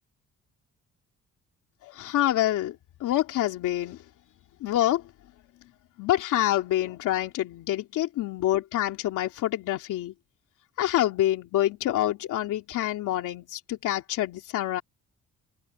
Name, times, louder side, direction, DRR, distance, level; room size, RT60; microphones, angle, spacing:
voice 1, 1.8-4.1 4.6-5.1 6.0-10.1 10.8-14.8, left 13 dB, 85° left, 2.8 m, -27 dB
cardioid pair, 90°, 30 cm